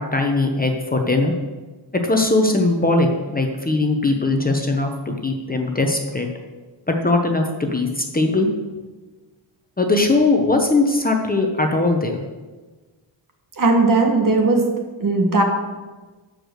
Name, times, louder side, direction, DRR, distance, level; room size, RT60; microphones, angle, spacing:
voice 1, 0.0-1.3 1.9-6.3 6.9-8.5 9.8-12.2, left 2 dB, 20° left, 3 dB, 0.9 m, -20 dB
voice 2, 13.6-14.6 15.0-15.4, right 3 dB, 45° right, 2 dB, 1.8 m, -17 dB
13.0 x 5.0 x 6.4 m, 1.3 s
wide cardioid pair, 150°, 46 cm